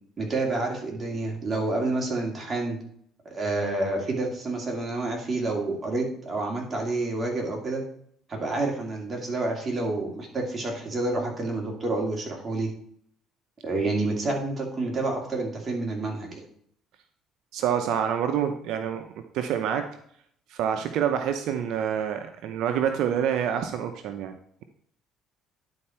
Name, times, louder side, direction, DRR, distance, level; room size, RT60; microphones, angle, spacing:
voice 1, 0.2-2.8 3.3-7.8 8.3-12.7 13.6-16.4, right 2 dB, 30° right, -1 dB, 2.6 m, -28 dB
voice 2, 17.5-19.0 19.3-19.9 20.5-24.3, right 9 dB, 75° right, 7 dB, 0.7 m, -27 dB
10.5 x 4.4 x 4.4 m, 0.65 s
cardioid pair, 100°, 0 cm